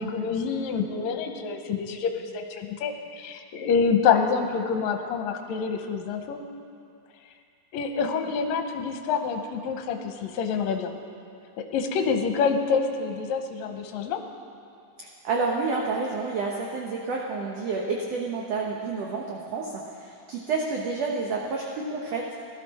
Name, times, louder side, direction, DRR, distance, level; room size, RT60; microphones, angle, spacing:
voice 1, 0.0-6.4 7.7-10.9 11.7-14.2, left 6 dB, 70° left, 5 dB, 1.9 m, -27 dB
voice 2, 15.2-22.4, right 4 dB, 65° right, -1 dB, 1.7 m, -29 dB
18.5 x 13.0 x 4.2 m, 2.5 s
omnidirectional pair, 3.9 m